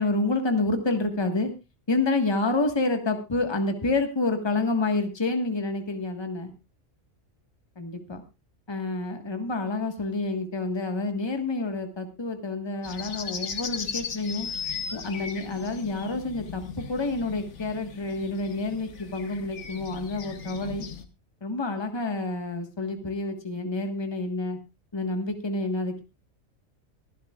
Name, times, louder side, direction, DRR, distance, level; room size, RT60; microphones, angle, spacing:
voice 1, 0.0-1.5 1.9-6.5 7.8-8.2 8.7-14.5 14.9-20.9 21.4-24.6 24.9-26.0, left 2 dB, 20° left, 6 dB, 1.5 m, -28 dB
sound 1, 12.8-21.0, left 6 dB, 60° left, 1.4 m, -37 dB
23.5 x 11.0 x 2.4 m, 0.26 s
omnidirectional pair, 1.4 m